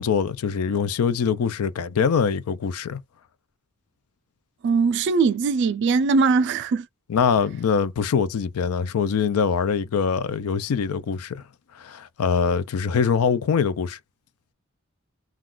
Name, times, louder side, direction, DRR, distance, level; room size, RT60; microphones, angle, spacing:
voice 1, 0.0-3.0 7.1-11.4 11.8-14.0, left 6 dB, 90° left, 0.4 m, -23 dB
voice 2, 4.6-6.9, right 4 dB, 55° right, 0.3 m, -20 dB
2.4 x 2.3 x 3.6 m
head